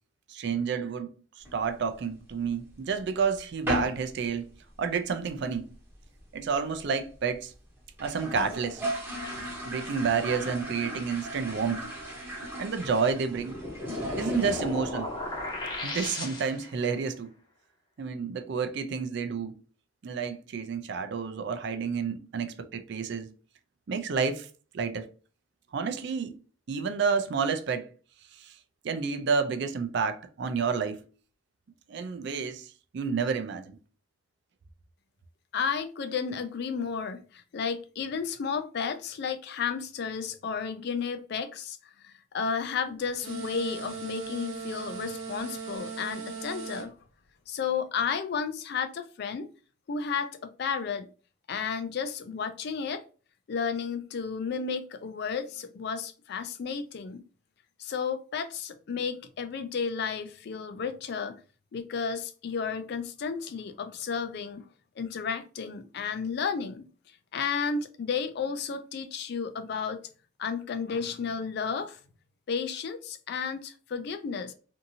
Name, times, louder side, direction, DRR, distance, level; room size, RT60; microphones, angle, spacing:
voice 1, 0.3-1.1 1.5-4.5 4.8-5.7 6.3-7.5 8.0-8.8 9.7-11.9 12.6-13.5 14.2-15.1 15.8-17.3 18.0-19.6 20.0-23.3 23.9-24.5 24.7-25.1 25.7-26.4 26.7-27.9 28.3-28.6 28.8-31.0 31.9-33.8, right 5 dB, 60° right, 0.4 m, -30 dB
sound 1, 1.4-2.5 2.9-3.0 3.2-3.4 3.7-4.1 4.3-4.4 4.8-4.9 5.1-5.6 5.9-6.0 6.2-6.3 6.5-6.6 7.1-7.2 7.5-7.6 7.9-16.1, equal, 10° right, 0.7 m, -37 dB
sound 2, 13.3-16.8, left 2 dB, 25° left, 0.7 m, -35 dB
voice 2, 35.5-41.8 42.0-46.9 47.5-49.5 49.9-51.1 51.5-53.0 53.5-57.3 57.8-61.4 61.7-64.7 65.0-66.9 67.3-70.0 70.4-72.0 72.5-74.5, left 6 dB, 55° left, 0.3 m, -32 dB
sound 3, 43.2-46.9, right 5 dB, 75° right, 1.0 m, -38 dB
2.6 x 2.6 x 2.6 m
head